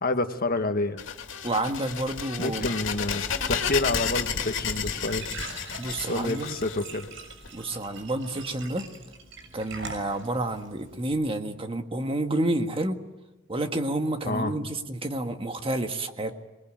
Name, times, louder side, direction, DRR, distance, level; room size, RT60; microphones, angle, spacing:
voice 1, 0.0-1.0 2.4-3.2 3.5-5.2 6.1-7.1 14.3-14.6, left 2 dB, 50° left, 7 dB, 1.6 m, -28 dB
sound 1, 1.0-7.5, left 6 dB, 70° left, 3.0 m, -31 dB
voice 2, 1.4-2.7 5.8-6.6 7.5-8.9 9.5-13.0 13.5-16.3, right 1 dB, 30° right, 6 dB, 1.7 m, -29 dB
Glass / Trickle dribble / Fill (with liquid), 4.3-11.1, right 3 dB, 70° right, 6.8 m, -43 dB
26.5 x 21.0 x 9.0 m, 1.0 s
head